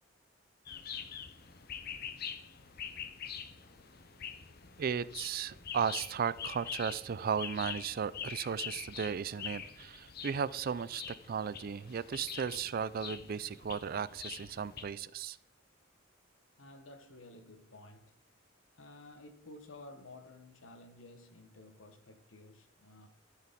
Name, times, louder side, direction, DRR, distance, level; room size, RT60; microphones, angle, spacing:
sound 1, 0.7-14.8, left 7 dB, 55° left, 0.7 m, -45 dB
voice 1, 4.8-15.4, right 7 dB, 50° right, 0.4 m, -35 dB
voice 2, 16.6-18.1 18.7-23.1, left 2 dB, 90° left, 1.2 m, -53 dB
13.0 x 4.7 x 5.1 m
head